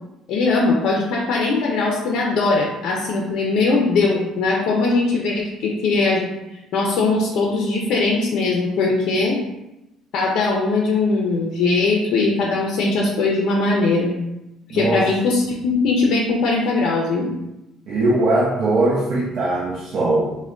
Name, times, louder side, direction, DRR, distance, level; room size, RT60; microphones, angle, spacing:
voice 1, 0.3-6.3 6.7-9.4 10.1-14.2 14.7-17.3, left 3 dB, 60° left, -1 dB, 0.5 m, -20 dB
voice 2, 14.7-15.1 17.9-20.3, right 2 dB, 55° right, -6 dB, 0.6 m, -20 dB
3.3 x 2.1 x 3.7 m, 0.93 s
cardioid pair, 160°, 0 cm